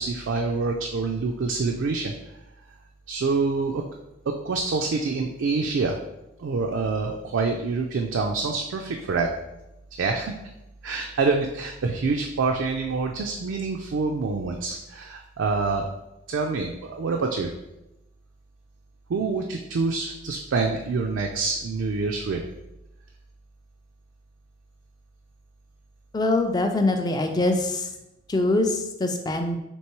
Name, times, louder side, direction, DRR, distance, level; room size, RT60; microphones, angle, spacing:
voice 1, 0.0-2.1 3.1-3.8 4.3-6.0 6.4-9.3 10.0-10.3 10.8-15.9 16.3-17.5 19.1-22.4, right 4 dB, 70° right, 2 dB, 0.4 m, -26 dB
voice 2, 26.1-27.9 28.3-29.6, left 2 dB, 20° left, 5 dB, 0.3 m, -23 dB
4.5 x 3.0 x 2.9 m, 0.92 s
head